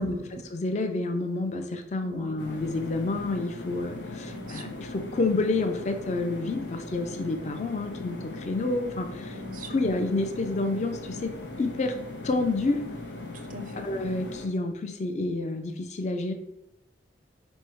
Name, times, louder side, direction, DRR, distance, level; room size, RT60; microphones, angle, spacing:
voice 1, 0.0-0.4 2.0-2.4 4.2-4.7 9.3-9.8 13.3-13.9, right 1 dB, 45° right, 5 dB, 0.4 m, -41 dB
voice 2, 0.5-9.4 9.7-11.3 11.6-11.9 12.2-12.8 13.8-16.3, left 2 dB, 40° left, 7 dB, 0.4 m, -29 dB
sound 1, 2.4-14.5, left 2 dB, 80° left, 0.7 m, -39 dB
4.4 x 2.1 x 4.6 m, 0.84 s
head